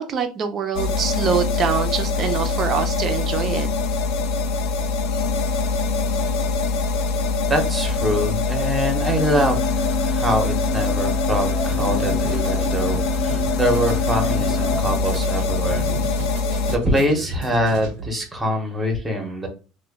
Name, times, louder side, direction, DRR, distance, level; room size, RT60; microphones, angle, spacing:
voice 1, 0.0-3.7, right 7 dB, 35° right, 7 dB, 0.5 m, -24 dB
sound 1, 0.8-16.8, left 3 dB, 80° left, 0.4 m, -23 dB
voice 2, 7.5-15.9 16.7-19.5, equal, 10° right, 4 dB, 0.8 m, -24 dB
sound 2, 9.2-14.8, left 3 dB, 20° left, 0.7 m, -30 dB
sound 3, 11.6-18.2, right 3 dB, 80° right, 0.7 m, -35 dB
3.0 x 2.2 x 3.5 m, 0.33 s
cardioid pair, 150°, 0 cm